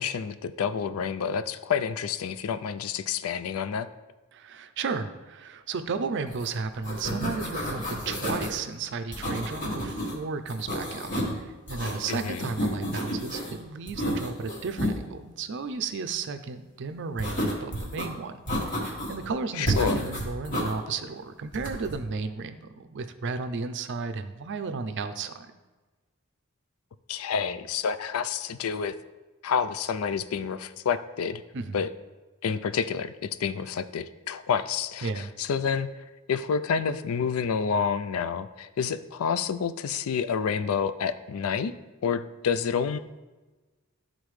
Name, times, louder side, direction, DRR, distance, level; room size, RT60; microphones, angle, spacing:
voice 1, 0.0-3.9 12.1-12.5 19.6-20.0 27.1-28.9 29.4-31.4 31.7-31.9 32.4-35.9 36.3-41.8 42.0-43.0, left 6 dB, 85° left, 12 dB, 0.4 m, -29 dB
voice 2, 4.3-18.3 18.7-25.5 31.5-31.9 35.0-35.3, right 4 dB, 55° right, 9 dB, 0.5 m, -34 dB
sound 1, 6.3-6.5 6.7-8.6 9.1-10.1 10.5-11.4 11.7-13.5 13.9-15.0 17.2-18.1 18.5-19.3 19.7-20.7 21.5-22.0, equal, 40° left, 1.6 m, -31 dB
11.5 x 3.8 x 3.2 m, 1.2 s
head